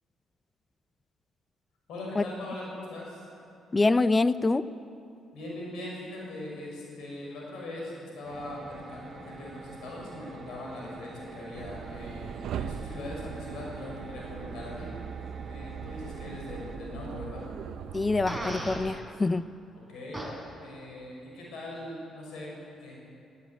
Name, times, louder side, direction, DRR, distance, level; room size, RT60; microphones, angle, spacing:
voice 1, 1.9-3.3 5.3-14.9 15.5-17.4 19.9-20.2 20.6-22.9, left 1 dB, 80° left, -3 dB, 6.7 m, -40 dB
voice 2, 3.7-4.6 17.9-19.5, left 3 dB, 25° left, 14 dB, 0.7 m, -25 dB
sound 1, 8.2-16.8, right 3 dB, 45° right, 1.7 m, -46 dB
sound 2, 11.5-19.0, right 8 dB, 75° right, 0.9 m, -40 dB
Fart, 18.3-18.8 20.1-20.3, equal, 5° left, 5.0 m, -35 dB
17.0 x 17.0 x 9.3 m, 2.6 s
cardioid pair, 90°, 0 cm